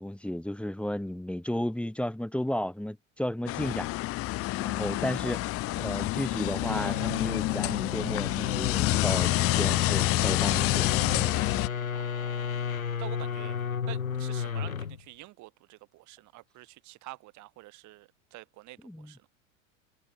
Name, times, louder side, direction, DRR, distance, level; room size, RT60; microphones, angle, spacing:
voice 1, 0.0-3.9 4.6-11.3 18.8-19.1, left 1 dB, 5° left, 2.0 m, -33 dB
sound 1, 3.5-11.7, left 18 dB, 35° left, 0.7 m, -28 dB
sound 2, 6.5-15.0, left 7 dB, 90° left, 1.6 m, -34 dB
voice 2, 11.9-12.6 13.0-13.6 13.9-18.8 19.0-19.3, right 19 dB, 45° right, 2.3 m, -47 dB
figure-of-eight pair, 85°, 40 cm